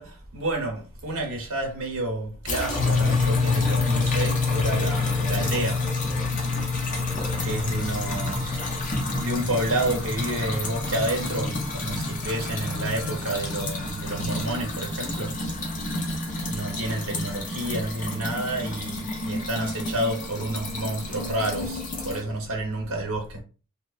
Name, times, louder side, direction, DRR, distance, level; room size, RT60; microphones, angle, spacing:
voice 1, 0.0-5.8 6.6-7.0 7.4-15.4 16.5-23.4, right 1 dB, 80° right, 0.9 m, -30 dB
sound 1, 2.5-22.2, left 1 dB, 35° left, 0.5 m, -31 dB
sound 2, 2.7-12.3, left 4 dB, 20° right, 0.8 m, -28 dB
2.8 x 2.0 x 2.3 m
head